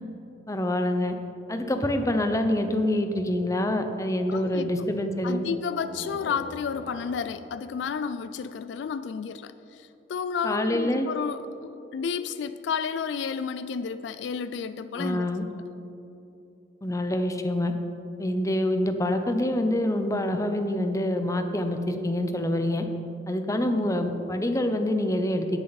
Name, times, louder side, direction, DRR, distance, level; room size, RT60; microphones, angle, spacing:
voice 1, 0.5-1.1 1.5-5.4 10.4-11.1 14.9-15.5 16.8-17.7 18.2-22.9 23.3-25.6, left 1 dB, 15° left, 6 dB, 0.6 m, -26 dB
voice 2, 4.3-4.7 5.2-15.3, left 6 dB, 70° left, 13 dB, 0.3 m, -31 dB
sound 1, 5.6-9.2, equal, 85° right, 2.5 m, -45 dB
17.5 x 6.7 x 4.1 m, 2.9 s
head